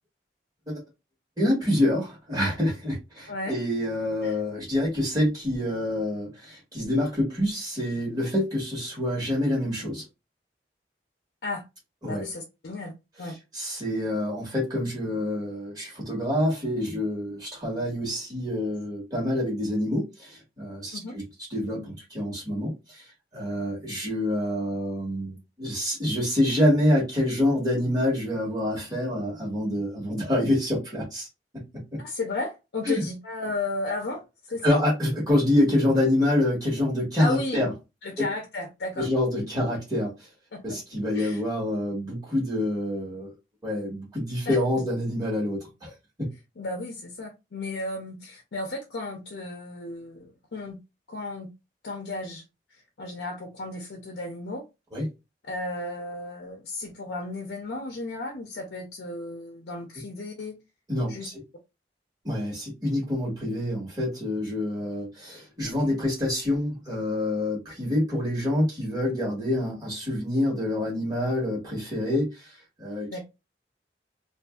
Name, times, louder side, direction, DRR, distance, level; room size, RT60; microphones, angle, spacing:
voice 1, 1.4-10.0 12.0-12.3 13.5-21.2 21.5-23.0 23.3-31.3 31.5-31.6 32.8-33.0 34.6-37.7 38.2-38.3 39.0-40.1 40.6-43.3 43.6-45.9 46.2-46.3 54.9-55.1 60.9-61.4 62.2-72.4 72.8-73.1, left 1 dB, 20° right, 1.3 m, -26 dB
voice 2, 12.0-12.9 13.2-13.4 20.9-21.2 32.0-34.2 34.5-34.8 37.2-37.7 38.0-39.1 40.5-40.8 41.1-41.4 44.5-44.6 46.6-50.8 51.1-51.5 51.8-52.4 52.7-54.6 55.4-60.6 61.1-61.3 65.6-65.9 73.1-73.3, left 2 dB, 75° left, 0.5 m, -34 dB
2.6 x 2.5 x 2.3 m
head